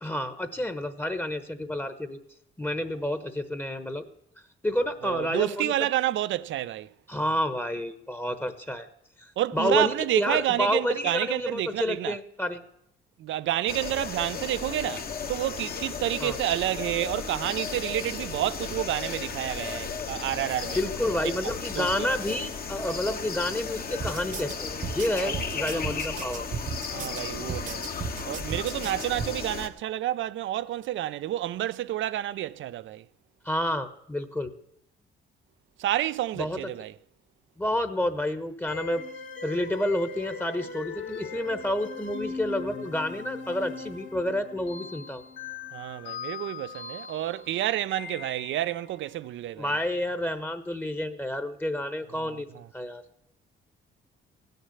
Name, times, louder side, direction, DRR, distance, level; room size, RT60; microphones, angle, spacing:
voice 1, 0.0-2.2 2.6-4.0 4.6-5.9 7.1-8.9 9.2-12.6 16.2-16.4 20.7-26.4 33.4-34.5 36.4-36.6 37.6-39.0 39.4-45.2 49.6-52.5 52.7-53.0, left 1 dB, 10° left, 1.0 m, -29 dB
voice 2, 5.0-6.9 9.4-12.2 13.2-20.8 21.4-22.1 25.1-25.4 26.9-27.8 28.2-33.0 35.8-36.9 45.7-49.7 52.2-52.7, right 13 dB, 75° right, 0.5 m, -29 dB
sound 1, 13.7-29.7, left 6 dB, 50° left, 1.3 m, -35 dB
sound 2, 24.0-29.3, right 5 dB, 40° right, 1.0 m, -35 dB
sound 3, 38.7-48.8, left 4 dB, 70° left, 2.4 m, -39 dB
15.5 x 6.7 x 9.7 m
cardioid pair, 90°, 20 cm